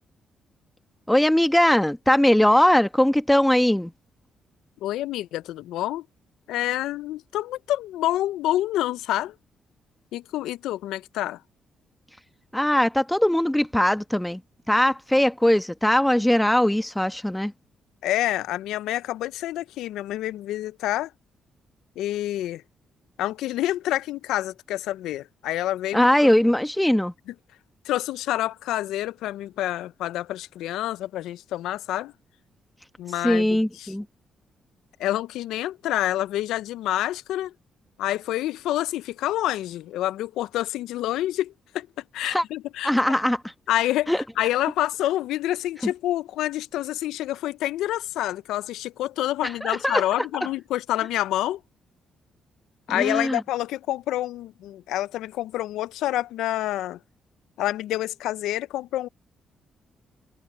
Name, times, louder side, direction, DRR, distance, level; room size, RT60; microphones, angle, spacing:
voice 1, 1.1-3.9 12.5-14.4 14.7-17.5 25.9-27.1 33.2-34.0 42.2-42.4 42.8-43.4 44.1-44.2 45.8-45.9 49.6-50.0 52.9-53.4, left 1 dB, 5° left, 1.3 m, -20 dB
voice 2, 4.8-6.1 6.5-9.4 10.1-11.4 18.0-21.1 22.0-22.6 23.2-26.3 27.8-32.1 33.0-33.9 35.0-37.5 38.0-41.9 42.1-42.9 43.7-44.1 44.4-51.6 52.9-57.0 57.6-59.1, left 14 dB, 80° left, 0.5 m, -27 dB
supercardioid pair, 55°, 0 cm